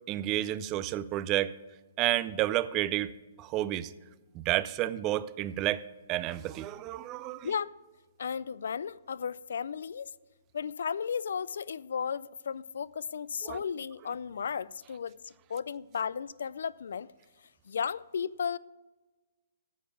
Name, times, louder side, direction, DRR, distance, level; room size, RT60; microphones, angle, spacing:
voice 1, 0.1-1.5 2.0-3.1 3.4-3.9 4.3-5.8 6.1-7.5 13.4-13.6, right 14 dB, 30° right, 0.4 m, -30 dB
voice 2, 8.2-10.1 10.5-17.1 17.7-18.6, left 7 dB, 75° left, 0.3 m, -34 dB
9.3 x 7.0 x 7.1 m
hypercardioid pair, 140°, 0 cm